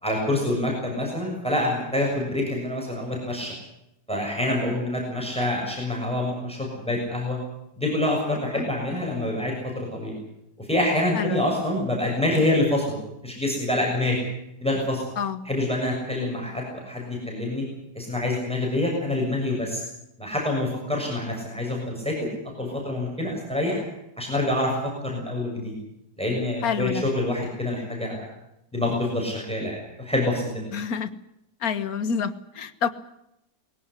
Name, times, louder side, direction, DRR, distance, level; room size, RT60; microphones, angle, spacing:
voice 1, 0.0-3.5 4.1-7.4 7.8-10.2 10.6-13.0 13.2-14.2 14.6-15.0 15.4-17.7 17.9-19.8 20.2-22.3 22.6-23.8 24.2-25.7 26.2-28.2 28.7-30.7, left 1 dB, 5° left, -1 dB, 6.8 m, -26 dB
voice 2, 11.1-11.5 15.2-15.4 26.6-27.0 30.7-31.1 31.6-32.9, left 7 dB, 60° left, 11 dB, 1.8 m, -27 dB
21.0 x 17.5 x 9.7 m, 0.83 s
omnidirectional pair, 1.8 m